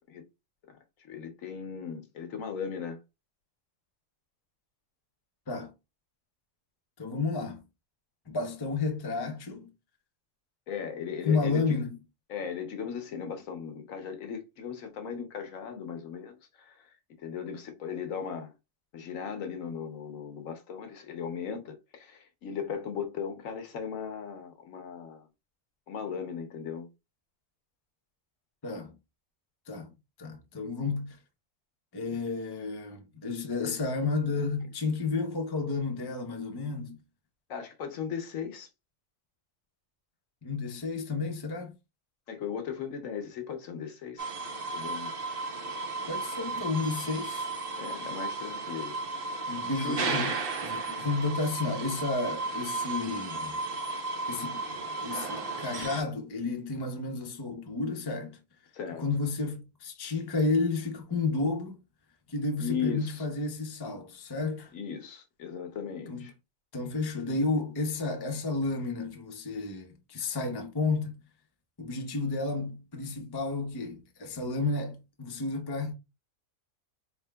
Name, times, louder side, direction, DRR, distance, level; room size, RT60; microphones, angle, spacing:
voice 1, 0.7-3.0 10.7-11.8 12.3-16.9 17.2-18.5 18.9-25.3 25.9-26.9 37.5-38.7 42.3-44.3 44.7-45.1 47.8-49.0 49.4-50.0 58.7-59.0 62.6-63.3 64.7-66.3, left 7 dB, 75° left, 1.2 m, -37 dB
voice 2, 7.0-7.6 8.3-9.7 11.2-12.0 28.6-29.0 29.7-29.9 30.2-31.2 31.9-37.0 40.4-41.7 46.1-47.5 49.5-53.5 54.3-54.6 55.0-58.4 59.0-61.8 62.3-64.7 66.1-66.3 66.7-71.1 71.8-75.9, left 3 dB, 25° left, 0.6 m, -31 dB
sound 1, 44.2-56.0, right 3 dB, 50° right, 0.8 m, -34 dB
4.2 x 3.5 x 2.2 m
omnidirectional pair, 1.4 m